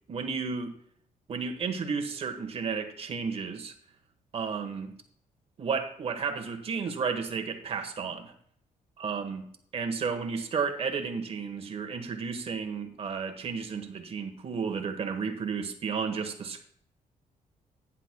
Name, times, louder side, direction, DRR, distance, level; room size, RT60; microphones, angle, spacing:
voice 1, 0.1-0.7 1.3-3.7 4.3-4.9 5.6-8.3 9.0-16.6, right 5 dB, 45° right, 5 dB, 1.2 m, -32 dB
16.0 x 10.0 x 2.2 m, 0.63 s
cardioid pair, 150°, 14 cm